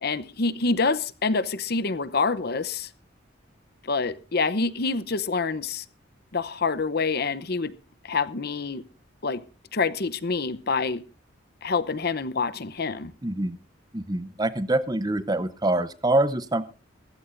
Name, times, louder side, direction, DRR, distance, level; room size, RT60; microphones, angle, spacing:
voice 1, 0.0-2.9 3.8-5.8 6.3-7.7 8.0-8.9 9.2-9.4 9.7-11.0 11.6-13.1, left 4 dB, 55° left, 16 dB, 0.8 m, -26 dB
voice 2, 13.2-13.6 13.9-16.7, right 2 dB, 20° right, 14 dB, 0.8 m, -25 dB
22.5 x 15.0 x 2.6 m, 0.34 s
head